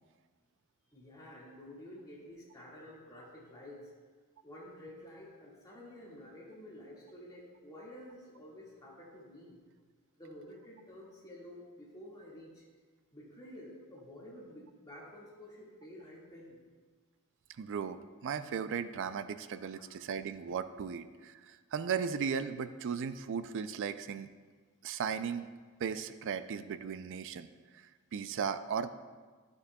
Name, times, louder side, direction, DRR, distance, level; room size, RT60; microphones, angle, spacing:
voice 1, 0.9-3.9 4.4-9.6 10.2-12.6 13.1-16.6 19.7-19.9, left 1 dB, 15° left, -5 dB, 1.8 m, -51 dB
voice 2, 17.6-24.3 24.8-25.5 25.8-27.5 27.7-28.9, right 6 dB, 60° right, 12 dB, 0.4 m, -36 dB
11.5 x 6.8 x 2.2 m, 1.4 s
head